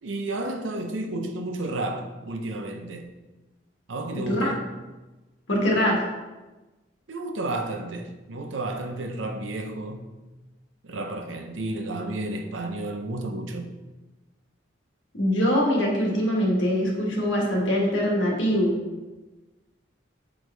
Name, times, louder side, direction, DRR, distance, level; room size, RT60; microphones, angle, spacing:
voice 1, 0.0-3.1 3.9-4.6 7.1-10.1 10.8-13.7, right 2 dB, 85° right, 5 dB, 0.7 m, -32 dB
voice 2, 4.1-4.5 5.5-6.0 15.2-18.8, equal, 80° left, -2 dB, 1.6 m, -23 dB
6.2 x 4.7 x 3.3 m, 1.1 s
head